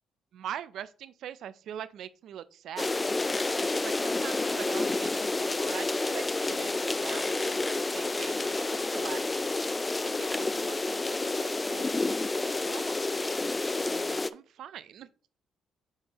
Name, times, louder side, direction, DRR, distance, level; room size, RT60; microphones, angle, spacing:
voice 1, 0.3-3.0 3.6-9.5 10.0-12.1 12.4-13.2 13.9-15.1, right 10 dB, 75° right, 0.4 m, -43 dB
sound 1, 2.8-14.3, left 2 dB, 20° left, 0.3 m, -29 dB
8.8 x 3.7 x 2.9 m
cardioid pair, 90°, 0 cm